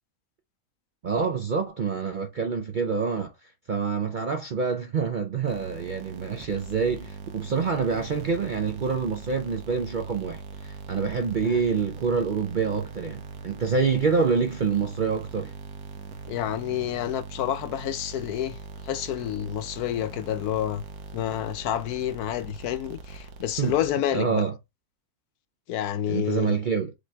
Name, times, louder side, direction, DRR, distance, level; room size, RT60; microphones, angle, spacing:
voice 1, 1.0-15.5 23.6-23.7 24.1-24.6 26.1-26.9, right 5 dB, 60° right, 0.5 m, -27 dB
sound 1, 5.5-24.2, right 4 dB, 75° right, 1.3 m, -41 dB
voice 2, 16.3-18.6 18.8-20.8 21.1-24.4 25.7-26.6, left 11 dB, 80° left, 1.1 m, -29 dB
5.1 x 3.0 x 3.4 m
omnidirectional pair, 1.6 m